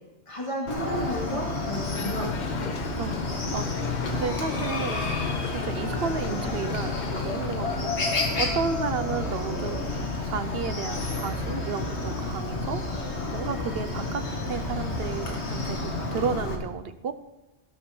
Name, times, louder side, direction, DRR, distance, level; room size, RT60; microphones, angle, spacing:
voice 1, 0.3-2.8, equal, 30° left, -2 dB, 2.3 m, -33 dB
Chicken rooster, 0.7-16.6, left 2 dB, 85° left, 1.8 m, -30 dB
sound 1, 1.9-8.1, left 6 dB, 50° left, 0.7 m, -38 dB
voice 2, 2.9-5.0 5.4-9.8 10.2-12.8 13.3-17.1, right 6 dB, 65° right, 11 dB, 0.9 m, -33 dB
16.5 x 6.1 x 5.2 m, 1.0 s
omnidirectional pair, 1.1 m